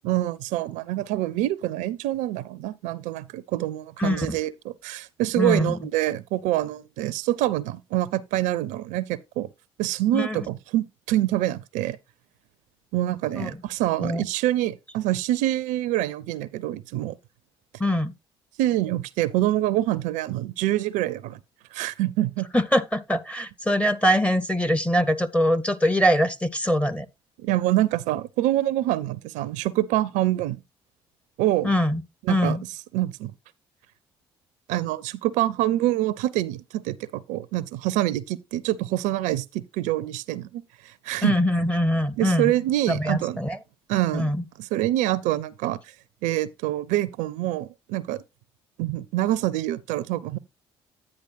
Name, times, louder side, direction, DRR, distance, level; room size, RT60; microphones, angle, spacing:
voice 1, 0.0-9.5 9.8-12.0 12.9-17.2 18.6-21.4 21.7-22.5 27.4-30.6 31.4-31.7 32.2-32.6 32.9-33.3 34.7-41.3 42.2-43.4 43.9-44.3 44.6-46.0 46.2-48.2 48.8-50.4, right 14 dB, 65° right, 0.4 m, -26 dB
voice 2, 4.0-4.4 5.4-5.7 10.1-10.4 13.3-13.5 14.0-14.2 17.8-18.1 22.5-27.1 31.6-32.0 32.3-32.6 41.2-42.5 42.9-43.6 44.1-44.4, equal, 10° left, 0.7 m, -23 dB
10.0 x 9.6 x 2.5 m
figure-of-eight pair, 45°, 14 cm